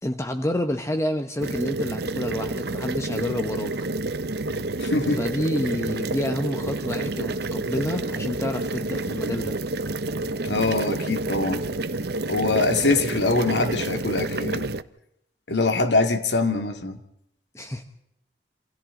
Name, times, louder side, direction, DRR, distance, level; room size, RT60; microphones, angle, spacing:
voice 1, 0.0-3.7 5.2-9.6 17.5-17.8, left 1 dB, 15° left, 1.2 m, -28 dB
sound 1, 1.4-14.8, right 2 dB, 65° right, 0.9 m, -29 dB
voice 2, 4.8-5.2 10.4-11.6 12.3-14.7 15.5-17.0, left 3 dB, 80° left, 2.4 m, -23 dB
28.0 x 27.0 x 3.9 m
head